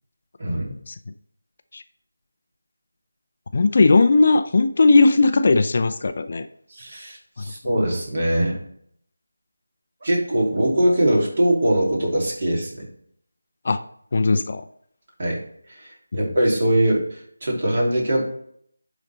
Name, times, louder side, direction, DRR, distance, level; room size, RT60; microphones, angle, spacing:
voice 1, 0.4-0.7 6.7-8.6 10.0-12.9 15.2-15.4 15.7-18.2, right 1 dB, 45° right, -2 dB, 3.0 m, -22 dB
voice 2, 3.5-6.5 7.4-7.5 13.6-13.8 14.1-14.6, left 3 dB, 45° left, 9 dB, 0.5 m, -17 dB
11.0 x 4.0 x 4.2 m, 0.66 s
figure-of-eight pair, 165°, 0 cm